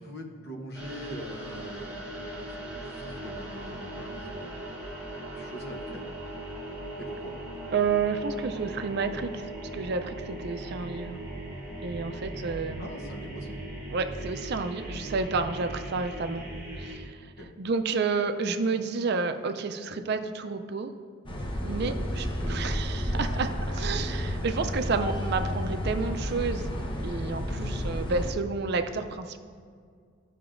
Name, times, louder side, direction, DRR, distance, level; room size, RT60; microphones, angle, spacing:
voice 1, 0.0-4.5 5.4-6.1 7.0-7.4 12.8-13.6 17.4-17.5 21.7-22.1, equal, 50° left, 2 dB, 0.9 m, -42 dB
sound 1, 0.7-17.0, right 1 dB, 10° right, 1.7 m, -39 dB
voice 2, 7.7-11.1 11.8-12.9 13.9-16.4 16.8-17.3 17.6-20.9 21.6-26.6 27.0-29.4, right 4 dB, 50° right, 8 dB, 0.4 m, -30 dB
sound 2, 21.3-28.3, equal, 25° left, 0.8 m, -31 dB
14.0 x 5.8 x 2.5 m, 2.1 s
head